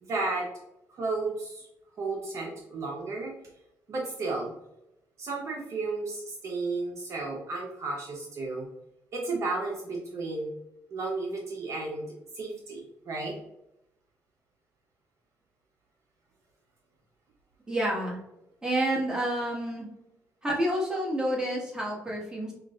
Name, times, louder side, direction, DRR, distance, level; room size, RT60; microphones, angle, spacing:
voice 1, 0.0-0.5 0.9-1.7 2.0-3.4 3.9-4.5 5.2-8.7 9.1-10.5 10.9-13.4, right 3 dB, 55° right, -1 dB, 0.8 m, -33 dB
voice 2, 17.7-18.2 18.6-19.9 20.4-22.5, right 1 dB, 10° right, -3 dB, 1.4 m, -29 dB
5.8 x 2.4 x 2.4 m, 0.88 s
cardioid pair, 95°, 6 cm